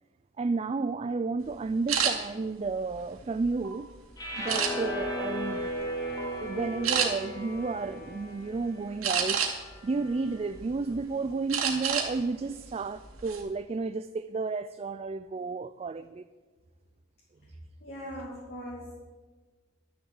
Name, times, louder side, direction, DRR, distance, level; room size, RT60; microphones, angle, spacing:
voice 1, 0.4-3.9 4.4-5.8 6.4-9.4 9.8-16.3, right 4 dB, 30° right, 12 dB, 0.3 m, -32 dB
sound 1, 1.9-2.1 2.8-3.7 4.5-5.1 5.6-5.8 6.2-6.3 6.8-7.1 9.0-9.7 10.2-11.0 11.5-12.1 12.4-12.6 13.0-13.4, right 7 dB, 85° right, 2.3 m, -28 dB
sound 2, 4.2-10.4, equal, 20° left, 2.5 m, -36 dB
voice 2, 17.4-18.9, equal, 50° left, -5 dB, 2.7 m, -41 dB
12.0 x 7.2 x 8.7 m, 1.3 s
head